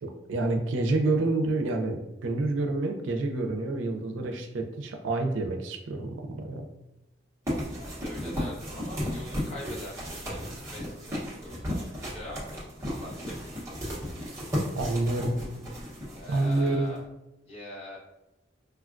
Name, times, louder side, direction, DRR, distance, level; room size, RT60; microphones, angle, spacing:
voice 1, 0.0-6.7 14.8-15.4 16.3-16.9, right 2 dB, 85° right, 3 dB, 0.4 m, -28 dB
sound 1, 7.5-17.0, equal, 15° right, 0.8 m, -35 dB
voice 2, 7.8-12.4 12.9-13.3 16.0-17.0 17.5-18.0, left 1 dB, 30° left, -5 dB, 0.9 m, -43 dB
3.3 x 2.2 x 2.4 m, 0.94 s
head